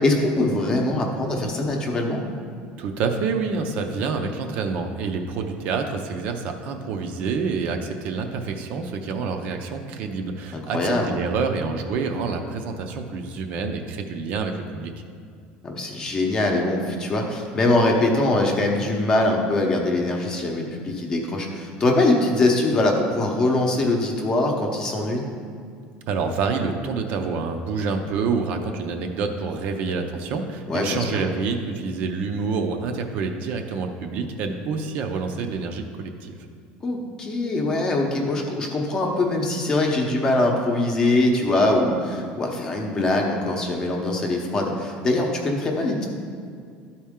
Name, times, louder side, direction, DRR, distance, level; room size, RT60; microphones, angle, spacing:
voice 1, 0.0-2.2 10.5-11.2 15.6-25.2 30.7-31.2 36.8-46.0, left 2 dB, 20° left, 1 dB, 0.8 m, -22 dB
voice 2, 2.8-14.9 26.1-36.4, right 4 dB, 45° right, 5 dB, 0.5 m, -27 dB
12.0 x 4.3 x 3.6 m, 2.2 s
cardioid pair, 175°, 4 cm